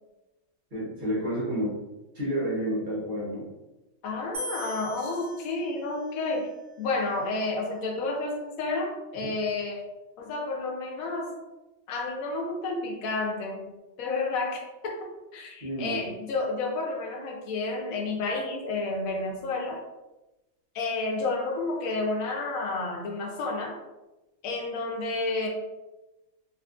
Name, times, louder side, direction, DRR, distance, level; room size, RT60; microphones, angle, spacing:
voice 1, 0.7-1.8 2.1-3.5 9.1-9.3 15.6-16.0, equal, 40° right, -7 dB, 1.0 m, -30 dB
voice 2, 4.0-6.5 6.8-9.9 10.2-11.3 11.9-13.7 14.0-19.8 20.7-23.8 24.4-25.5, left 3 dB, 85° left, 1 dB, 1.1 m, -30 dB
sound 1, 4.3-7.6, equal, 55° right, 0.4 m, -42 dB
2.8 x 2.5 x 2.3 m, 1.0 s
omnidirectional pair, 1.4 m